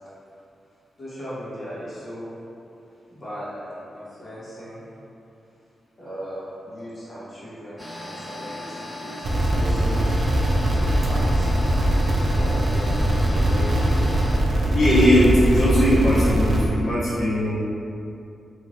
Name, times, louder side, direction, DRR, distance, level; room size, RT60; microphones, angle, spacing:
voice 1, 1.0-2.3 3.1-4.8 6.0-10.1 10.7-11.4 12.4-14.2, equal, 30° left, -9 dB, 1.0 m, -37 dB
sound 1, 7.8-14.4, left 1 dB, ahead, 0.5 m, -37 dB
sound 2, 9.2-16.7, right 1 dB, 60° right, 0.4 m, -21 dB
voice 2, 14.7-17.5, equal, 50° left, -11 dB, 1.2 m, -19 dB
2.7 x 2.5 x 3.0 m, 2.7 s
wide cardioid pair, 125°, 0 cm